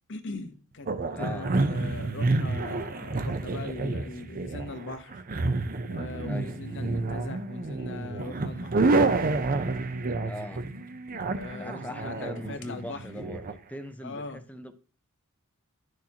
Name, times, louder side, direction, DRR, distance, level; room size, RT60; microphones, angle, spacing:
voice 1, 0.1-0.9 1.2-5.2 5.9-9.1 11.3-13.0 14.0-14.4, left 3 dB, 60° left, 0.9 m, -40 dB
sound 1, 0.9-13.5, right 3 dB, 40° right, 0.6 m, -29 dB
voice 2, 1.1-1.5 6.3-6.6 10.2-10.7 11.5-14.7, left 1 dB, 5° left, 0.6 m, -40 dB
sound 2, 5.6-13.0, left 3 dB, 80° left, 1.2 m, -51 dB
10.0 x 6.4 x 2.8 m
head